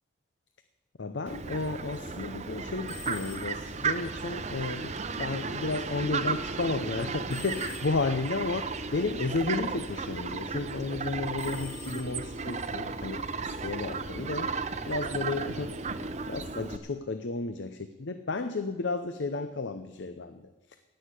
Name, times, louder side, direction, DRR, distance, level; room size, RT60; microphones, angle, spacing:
voice 1, 1.0-15.8 16.3-20.5, left 3 dB, 70° left, 9 dB, 0.7 m, -33 dB
Fowl, 1.3-16.8, right 4 dB, 35° right, 0.7 m, -34 dB
sound 1, 2.8-3.8 7.3-8.3 11.3-12.5, left 5 dB, 35° left, 3.7 m, -47 dB
17.5 x 6.5 x 8.2 m, 1.2 s
head